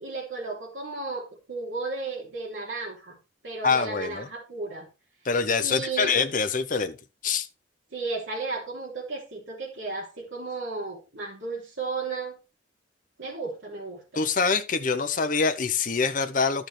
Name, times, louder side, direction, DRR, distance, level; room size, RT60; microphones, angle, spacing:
voice 1, 0.0-3.2 3.4-4.9 5.6-6.2 7.9-12.4 13.2-14.2, right 3 dB, 75° right, 3.2 m, -34 dB
voice 2, 3.6-4.3 5.2-7.0 7.2-7.5 14.1-16.7, left 5 dB, 45° left, 0.8 m, -25 dB
11.5 x 5.9 x 3.3 m
head